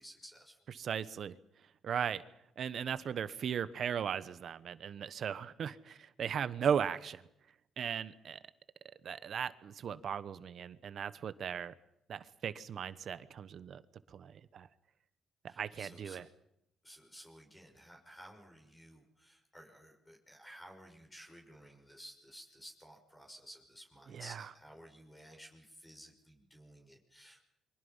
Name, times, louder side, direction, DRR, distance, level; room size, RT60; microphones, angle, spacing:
voice 1, 0.0-0.6 15.5-16.2 16.8-27.4, equal, 15° left, 1 dB, 6.0 m, -55 dB
voice 2, 0.7-1.3 1.8-2.2 2.6-7.2 7.8-8.4 9.0-11.7 12.1-13.8 14.1-14.7 15.4-16.2 24.1-24.5, right 8 dB, 60° right, 15 dB, 1.1 m, -37 dB
29.0 x 24.0 x 5.6 m, 0.79 s
cardioid pair, 90°, 0 cm